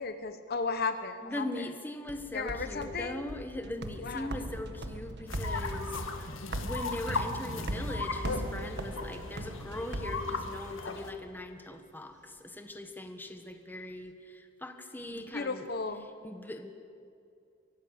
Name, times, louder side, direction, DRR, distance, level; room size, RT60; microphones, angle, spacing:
voice 1, 0.0-1.6 2.3-3.2 4.0-4.4 15.1-16.1, left 4 dB, 50° left, 9 dB, 1.0 m, -35 dB
voice 2, 1.2-15.7 16.2-16.7, left 1 dB, 10° left, 6 dB, 1.5 m, -40 dB
sound 1, 2.1-10.9, right 1 dB, 55° right, 1.6 m, -39 dB
sound 2, 5.3-11.1, left 3 dB, 80° left, 1.9 m, -37 dB
24.5 x 17.5 x 8.0 m, 2.4 s
head